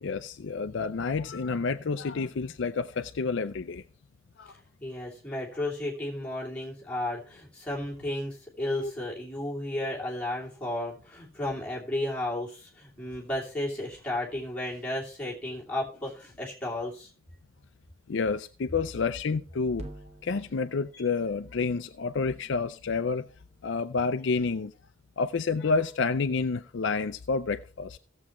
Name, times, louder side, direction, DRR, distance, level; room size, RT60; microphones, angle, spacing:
voice 1, 0.0-3.8 4.4-4.5 8.8-8.9 18.1-19.9 20.2-23.2 23.6-24.7 25.2-28.0, left 4 dB, 60° left, 0.5 m, -29 dB
voice 2, 4.8-17.1, left 1 dB, 5° left, 2.7 m, -33 dB
sound 1, 19.7-24.1, right 1 dB, 30° right, 1.0 m, -50 dB
17.0 x 7.2 x 3.1 m
head